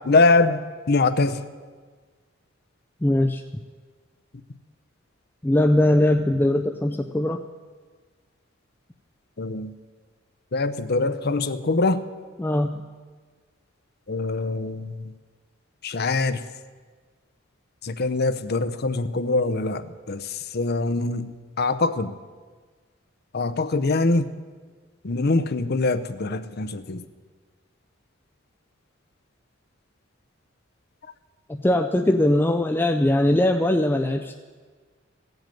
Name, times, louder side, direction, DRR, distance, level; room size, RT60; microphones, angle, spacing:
voice 1, 0.0-1.4 9.4-9.7 10.5-12.0 14.1-14.9 15.8-16.4 17.8-20.2 20.5-22.1 23.3-24.2 25.0-27.0, left 3 dB, 55° left, 11 dB, 0.7 m, -23 dB
voice 2, 3.0-3.4 5.4-7.4 12.4-12.9 31.5-34.4, left 1 dB, 10° left, 5 dB, 0.5 m, -21 dB
16.0 x 8.0 x 9.1 m, 1.5 s
head